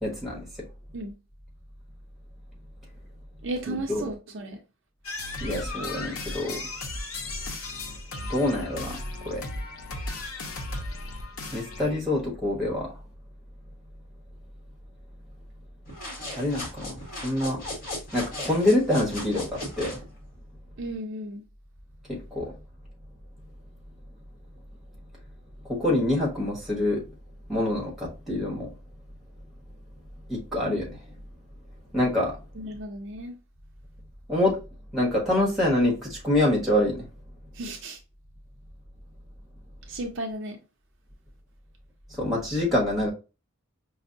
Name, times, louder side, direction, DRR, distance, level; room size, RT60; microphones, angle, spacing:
voice 1, 0.0-0.4 3.7-4.0 5.4-6.6 8.3-9.0 9.2-9.4 11.5-12.9 16.3-17.6 18.1-20.0 22.1-22.5 25.7-27.0 27.5-28.7 30.3-31.0 31.9-32.4 34.3-34.6 34.9-37.1 42.1-43.1, left 1 dB, ahead, 1.2 m, -26 dB
voice 2, 3.4-4.6 20.8-21.4 32.5-33.4 37.5-38.0 39.9-40.6, right 1 dB, 55° right, 0.5 m, -34 dB
sound 1, 5.0-12.0, left 2 dB, 70° left, 0.7 m, -36 dB
sound 2, 15.9-20.0, left 1 dB, 40° left, 1.3 m, -37 dB
5.1 x 2.0 x 2.5 m
head